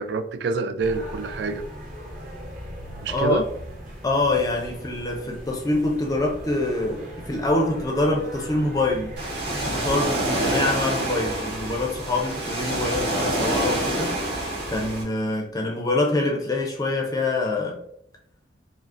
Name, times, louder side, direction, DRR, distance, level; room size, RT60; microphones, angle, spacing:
voice 1, 0.0-1.6 3.0-3.5, right 3 dB, 65° right, 10 dB, 0.3 m, -27 dB
sound 1, 0.8-10.1, equal, 45° right, 0.8 m, -39 dB
voice 2, 3.1-3.4 4.0-9.2 9.5-14.1 14.7-17.8, left 2 dB, 20° left, 0 dB, 0.5 m, -25 dB
Ocean, 9.2-15.0, right 1 dB, 85° right, 1.4 m, -27 dB
4.7 x 2.0 x 2.5 m, 0.71 s
head